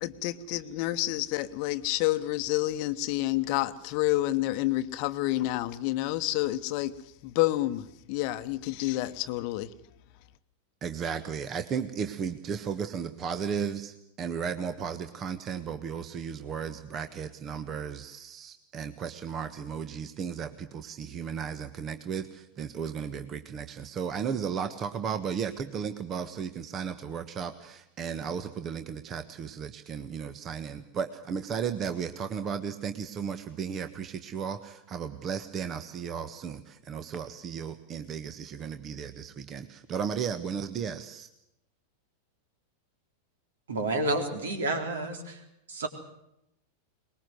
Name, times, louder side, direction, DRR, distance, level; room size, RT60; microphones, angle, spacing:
voice 1, 0.0-6.9 7.2-9.7, left 16 dB, 45° left, 13 dB, 1.1 m, -29 dB
voice 2, 10.8-41.3, right 7 dB, 30° right, 9 dB, 1.3 m, -35 dB
voice 3, 43.7-45.4 45.7-45.9, right 2 dB, 65° right, 5 dB, 3.9 m, -30 dB
23.5 x 21.0 x 8.0 m, 0.82 s
figure-of-eight pair, 90°, 0 cm